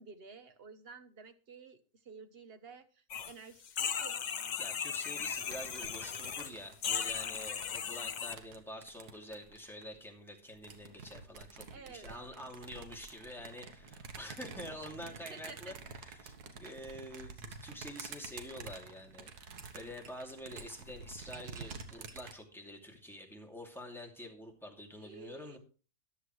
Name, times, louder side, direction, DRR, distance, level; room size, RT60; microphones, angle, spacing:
voice 1, 0.0-4.2 11.7-12.7 15.3-15.7 25.0-25.6, right 5 dB, 45° right, 10 dB, 1.1 m, -52 dB
sound 1, 3.1-3.3 3.6-6.5 6.8-8.3, left 7 dB, 75° left, 0.4 m, -37 dB
voice 2, 4.6-25.6, left 1 dB, ahead, 0 dB, 2.5 m, -47 dB
sound 2, 5.2-10.0 10.5-22.3, right 5 dB, 90° right, 1.8 m, -49 dB
14.0 x 10.5 x 3.2 m, 0.37 s
omnidirectional pair, 1.6 m